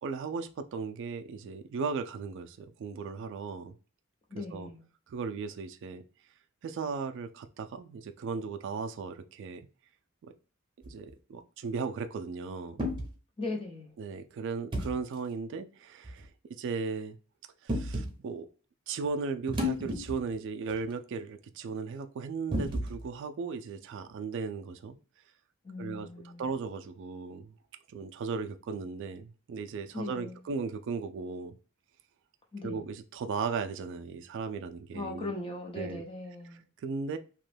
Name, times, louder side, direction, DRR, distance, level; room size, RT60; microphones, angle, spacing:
voice 1, 0.0-3.7 4.3-4.7 5.1-6.0 6.6-9.7 10.2-10.3 10.8-12.8 14.0-17.2 17.6-18.5 18.9-25.0 25.8-27.5 27.9-31.5 32.6-35.3 35.7-36.0 36.8-37.2, right 5 dB, 60° right, 0.3 m, -36 dB
voice 2, 4.3-4.9 13.4-13.9 25.6-26.5 29.9-30.4 32.5-32.9 34.9-36.6, left 2 dB, 25° left, 0.7 m, -39 dB
sound 1, 10.8-11.1 12.8-13.1 14.7-14.9 16.0-16.2 17.7-18.1 19.5-20.4 20.7-20.8 22.5-23.1, left 1 dB, 25° right, 0.7 m, -32 dB
2.9 x 2.1 x 3.1 m
head